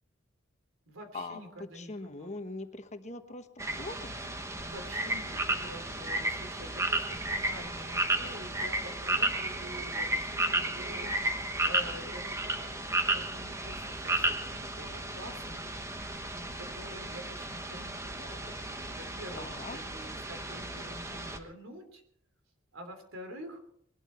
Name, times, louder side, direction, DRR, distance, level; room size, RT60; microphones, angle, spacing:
voice 1, 0.9-2.3 4.6-22.0 22.7-23.6, equal, 80° right, 6 dB, 3.2 m, -47 dB
voice 2, 1.7-4.3 19.3-19.8, left 2 dB, 35° left, 8 dB, 1.2 m, -42 dB
sound 1, 3.6-21.4, right 2 dB, 15° right, 1.2 m, -33 dB
21.0 x 12.5 x 4.4 m, 0.68 s
head